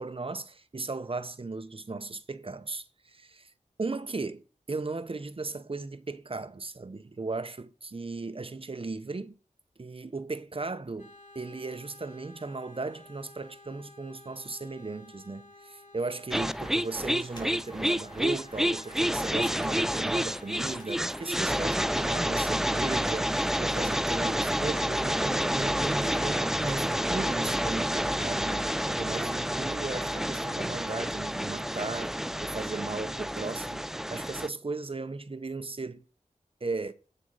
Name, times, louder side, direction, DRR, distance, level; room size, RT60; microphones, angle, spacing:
voice 1, 0.0-2.8 3.1-3.5 3.8-9.3 9.8-28.7 29.0-32.1 32.4-36.0 36.6-36.9, right 3 dB, 40° right, 0.8 m, -36 dB
sound 1, 11.0-30.9, left 2 dB, 55° left, 2.8 m, -53 dB
sound 2, 16.3-34.5, equal, 5° right, 0.3 m, -29 dB
sound 3, 17.3-21.1 21.4-22.1 22.5-22.6, left 1 dB, 30° left, 4.4 m, -56 dB
8.8 x 6.9 x 4.7 m
wide cardioid pair, 65°, 14 cm